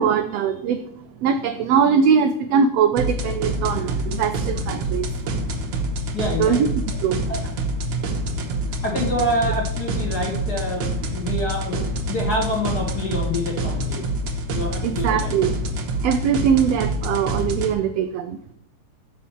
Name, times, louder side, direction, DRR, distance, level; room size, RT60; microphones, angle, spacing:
voice 1, 0.0-5.3 6.4-6.7 7.0-7.2 7.9-8.1 14.8-15.5 16.0-18.4, right 7 dB, 85° right, 8 dB, 1.4 m, -21 dB
sound 1, 3.0-17.7, right 1 dB, 60° right, 1.4 m, -26 dB
voice 2, 6.1-6.6 7.3-7.5 8.8-14.0 14.5-15.3, left 1 dB, 40° left, -1 dB, 1.6 m, -27 dB
6.4 x 5.6 x 7.1 m, 0.76 s
omnidirectional pair, 3.5 m